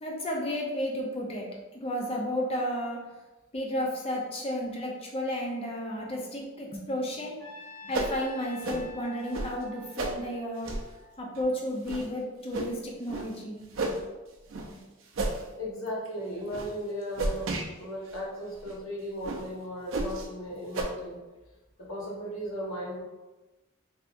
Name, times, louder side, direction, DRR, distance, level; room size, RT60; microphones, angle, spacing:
voice 1, 0.0-3.0 3.5-7.3 7.8-10.7 11.2-13.9, equal, 25° left, -1 dB, 0.5 m, -32 dB
Trumpet, 7.4-11.6, left 3 dB, 45° left, 1.1 m, -48 dB
sound 1, 7.9-8.2 8.6-8.8 9.3-9.5 10.0-10.2 10.6-10.9 11.4-11.5 11.8-12.0 12.5-12.7 13.1-13.3 13.7-14.0 14.5-14.7 15.1-15.4 15.9-16.1 16.5-16.7 17.2-17.7 18.1-18.2 18.6-18.7 19.2-19.4 19.9-20.3 20.7-20.8, right 2 dB, 70° right, 0.5 m, -31 dB
voice 2, 15.6-21.2 21.8-23.0, equal, 70° left, -4 dB, 1.0 m, -36 dB
3.4 x 2.7 x 2.5 m, 1.1 s
head